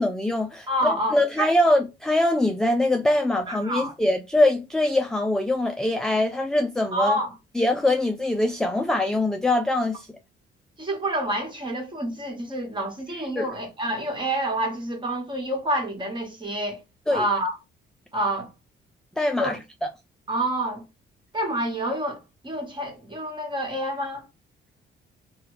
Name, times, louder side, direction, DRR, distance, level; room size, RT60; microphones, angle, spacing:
voice 1, 0.0-7.2 7.6-10.1 13.4-13.5 17.1-17.3 19.2-19.9, left 1 dB, 5° left, 0.3 m, -23 dB
voice 2, 0.7-1.5 3.5-3.9 6.9-7.3 10.8-16.8 17.1-17.6 18.1-18.5 19.4-19.6 20.3-20.8 21.3-24.3, right 1 dB, 25° right, 1.4 m, -28 dB
3.2 x 2.3 x 3.1 m
cardioid pair, 90°, 20 cm